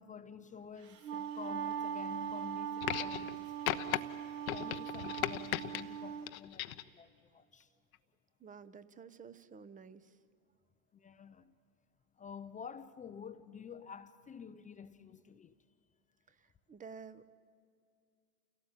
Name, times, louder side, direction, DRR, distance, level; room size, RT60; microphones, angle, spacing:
voice 1, 0.0-4.1 4.5-7.7 10.9-11.5 12.2-15.5, left 7 dB, 20° left, 0.6 m, -50 dB
Wind instrument woodwind instrument, 0.8-6.3, right 8 dB, 45° right, 1.8 m, -40 dB
sound 1, 2.8-3.4 3.7-4.0 4.5-5.8 6.3-6.9 7.9-8.0, left 14 dB, 75° left, 1.0 m, -36 dB
voice 2, 8.4-10.2 16.3-17.2, right 6 dB, 20° right, 0.9 m, -52 dB
28.0 x 17.0 x 9.0 m
hypercardioid pair, 100°, 43 cm